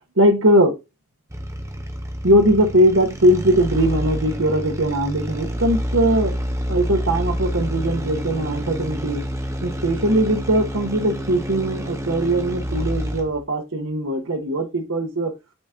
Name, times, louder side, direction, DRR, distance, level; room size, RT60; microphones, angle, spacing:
voice 1, 0.2-0.8 2.2-6.3 6.7-9.2 9.6-15.3, right 1 dB, 60° right, 1.4 m, -20 dB
sound 1, 1.3-13.4, equal, 15° right, 0.9 m, -28 dB
8.6 x 4.2 x 3.7 m
head